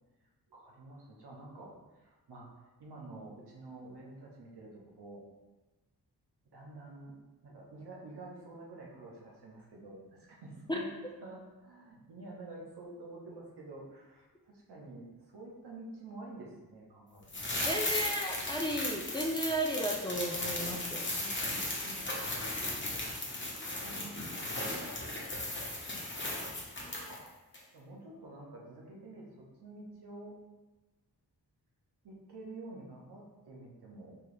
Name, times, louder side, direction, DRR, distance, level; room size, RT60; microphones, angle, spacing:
voice 1, 0.5-2.5 2.8-5.2 6.5-7.2 7.4-10.9 11.2-15.1 15.3-17.6 21.2-23.3 23.5-25.0 26.8-27.4 27.7-30.4 32.0-34.1, right 2 dB, 80° right, -2 dB, 1.0 m, -49 dB
sound 1, 17.3-27.3 27.5-27.6, left 1 dB, 30° left, 1.0 m, -36 dB
voice 2, 17.6-21.1, equal, 10° left, 0 dB, 0.5 m, -34 dB
4.4 x 2.8 x 3.2 m, 1.1 s
wide cardioid pair, 80°, 39 cm